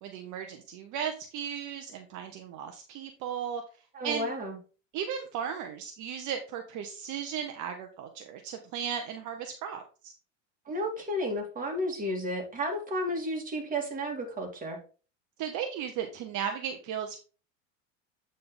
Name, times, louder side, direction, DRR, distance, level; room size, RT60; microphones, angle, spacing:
voice 1, 0.0-3.6 4.0-4.3 4.9-10.1 15.4-17.2, right 8 dB, 50° right, 5 dB, 1.0 m, -36 dB
voice 2, 3.9-4.6 10.7-14.8, equal, 20° right, 2 dB, 2.4 m, -32 dB
8.5 x 3.9 x 3.9 m, 0.36 s
hypercardioid pair, 100°, 38 cm